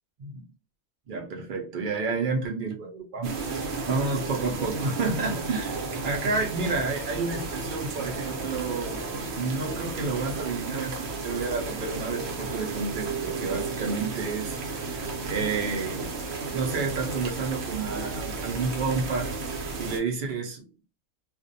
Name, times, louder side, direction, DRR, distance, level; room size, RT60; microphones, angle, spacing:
voice 1, 1.1-9.0 9.4-16.1 16.5-19.3 19.8-20.6, right 4 dB, 80° right, 1 dB, 0.4 m, -30 dB
sound 1, 3.2-20.0, right 3 dB, 60° right, 0.7 m, -33 dB
2.4 x 2.1 x 2.5 m, 0.34 s
omnidirectional pair, 1.5 m